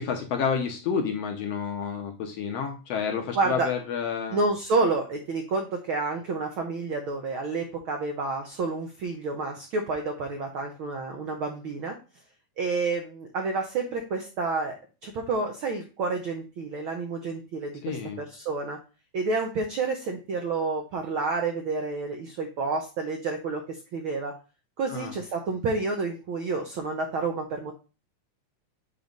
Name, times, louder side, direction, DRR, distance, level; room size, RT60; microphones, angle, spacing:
voice 1, 0.0-4.4 17.8-18.2 24.9-25.1, left 6 dB, 65° left, 3 dB, 1.7 m, -30 dB
voice 2, 3.3-3.7 4.3-11.9 12.6-14.7 15.0-18.8 19.1-24.3 24.8-27.7, right 3 dB, 80° right, 3 dB, 1.1 m, -29 dB
7.9 x 3.1 x 5.2 m, 0.32 s
omnidirectional pair, 3.5 m